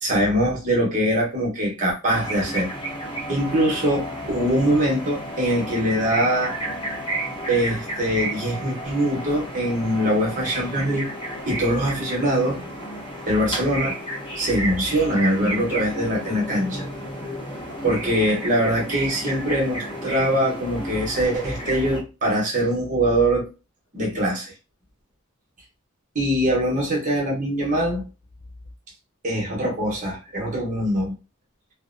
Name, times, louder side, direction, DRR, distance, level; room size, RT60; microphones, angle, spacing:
voice 1, 0.0-2.7 3.3-6.5 7.5-11.1 11.5-12.6 13.2-14.0 14.4-16.8 17.8-23.5 23.9-24.5 26.1-28.0 29.2-31.1, right 1 dB, 35° right, 0.9 m, -23 dB
sound 1, 2.1-22.0, right 1 dB, 25° left, 0.7 m, -32 dB
2.5 x 2.0 x 2.5 m
head